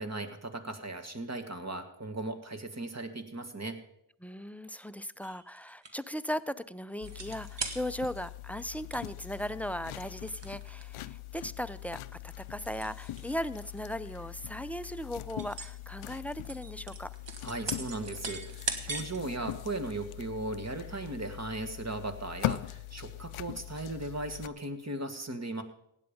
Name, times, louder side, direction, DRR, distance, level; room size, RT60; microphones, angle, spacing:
voice 1, 0.0-3.8 17.4-25.6, right 2 dB, 35° right, 7 dB, 1.8 m, -37 dB
voice 2, 4.2-12.0 12.4-17.1, equal, 5° left, 13 dB, 0.5 m, -37 dB
sound 1, 5.2-6.2 7.0-8.3 8.6-8.7 8.9-9.2 10.2-10.9 11.5-11.6 12.1-13.3 13.6-13.9 14.4-14.5 14.8-15.7 16.1-19.2 19.6-19.7, right 4 dB, 60° right, 1.7 m, -40 dB
sound 2, 7.0-24.5, left 14 dB, 85° left, 0.5 m, -41 dB
16.0 x 9.1 x 5.3 m, 0.76 s
cardioid pair, 50°, 48 cm